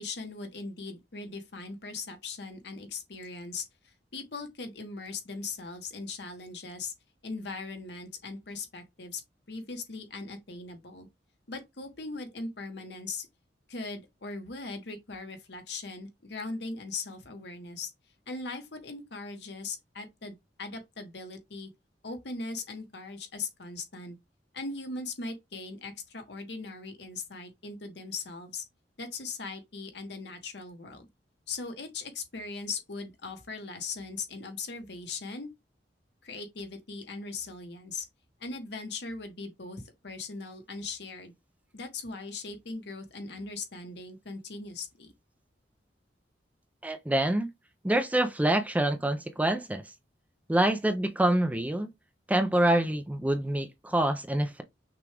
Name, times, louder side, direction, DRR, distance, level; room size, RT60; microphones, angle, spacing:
voice 1, 0.0-6.9 7.2-9.2 9.5-11.1 11.5-13.3 13.7-17.9 18.3-21.7 22.0-24.2 24.5-28.6 29.0-31.1 31.5-35.5 36.2-38.1 38.4-41.3 41.7-45.1, left 3 dB, 65° left, 1.1 m, -39 dB
voice 2, 46.8-47.5 47.8-49.8 50.5-51.9 52.3-54.6, right 1 dB, 10° right, 0.4 m, -26 dB
5.9 x 2.3 x 3.3 m
head